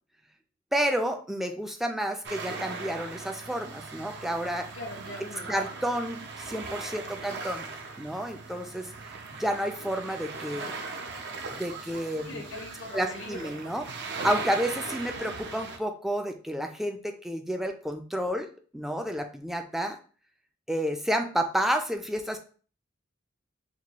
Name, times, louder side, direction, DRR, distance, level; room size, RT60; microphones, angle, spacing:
voice 1, 0.7-4.7 5.5-7.7 8.0-8.9 9.4-10.7 11.5-12.4 12.9-13.9 14.2-18.5 18.7-20.0 20.7-22.4, equal, ahead, 4 dB, 0.3 m, -30 dB
sound 1, 2.2-15.8, right 4 dB, 60° right, 0.5 m, -39 dB
voice 2, 4.7-5.6 7.0-7.4 12.2-13.5, left 2 dB, 80° left, 1 dB, 0.8 m, -41 dB
4.4 x 2.3 x 2.9 m, 0.40 s
head